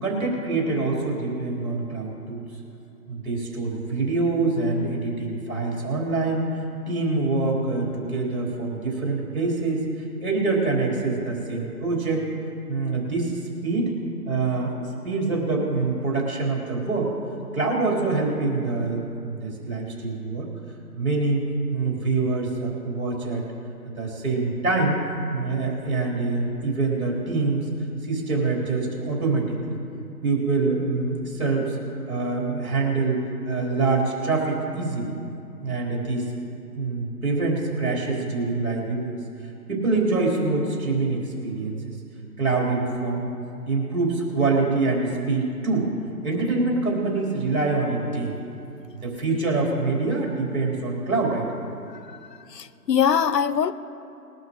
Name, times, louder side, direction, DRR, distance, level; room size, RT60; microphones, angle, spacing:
voice 1, 0.0-2.5 3.1-6.5 6.9-12.3 12.7-14.0 14.3-14.7 15.0-17.1 17.5-20.5 20.9-21.4 21.7-23.4 23.8-25.0 25.3-27.7 28.0-29.8 30.2-31.8 32.1-35.1 35.6-36.3 36.7-39.2 39.7-41.8 42.4-43.4 43.7-45.9 46.2-48.5 48.9-51.5, right 3 dB, 60° right, -2 dB, 3.8 m, -25 dB
voice 2, 52.5-53.7, left 7 dB, 80° left, 14 dB, 0.8 m, -22 dB
20.5 x 12.0 x 3.8 m, 2.6 s
figure-of-eight pair, 160°, 48 cm